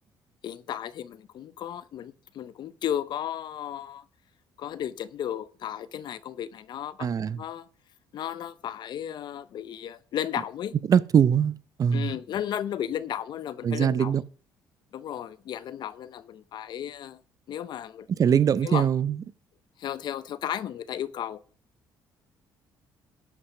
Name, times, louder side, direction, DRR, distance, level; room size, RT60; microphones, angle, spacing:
voice 1, 0.4-4.0 4.6-7.1 7.4-7.7 8.1-10.7 11.9-14.1 14.9-17.2 17.5-18.1 18.6-18.9 19.8-21.4, left 10 dB, 60° left, 0.7 m, -34 dB
voice 2, 7.0-7.4 10.9-12.1 13.6-14.2 18.1-19.2, right 8 dB, 45° right, 0.6 m, -22 dB
12.0 x 5.7 x 5.7 m
supercardioid pair, 80°, 8 cm